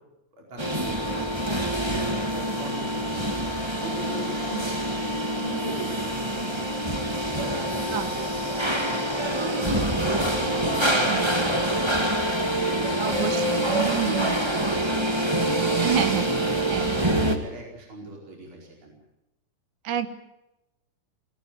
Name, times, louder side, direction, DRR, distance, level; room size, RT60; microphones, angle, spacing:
voice 1, 0.3-1.5 2.1-3.3 3.7-6.9 7.4-13.5 13.8-15.3 15.8-18.9, right 2 dB, 35° right, -1 dB, 5.3 m, -40 dB
sound 1, 0.6-17.4, right 1 dB, 15° right, 1.0 m, -26 dB
voice 2, 1.2-1.9 4.5-4.7 7.8-8.1 11.1-11.3 13.0-14.4 15.8-16.3 16.7-17.0 19.8-20.1, right 10 dB, 65° right, 11 dB, 2.4 m, -30 dB
22.5 x 17.0 x 9.5 m, 0.92 s
omnidirectional pair, 4.2 m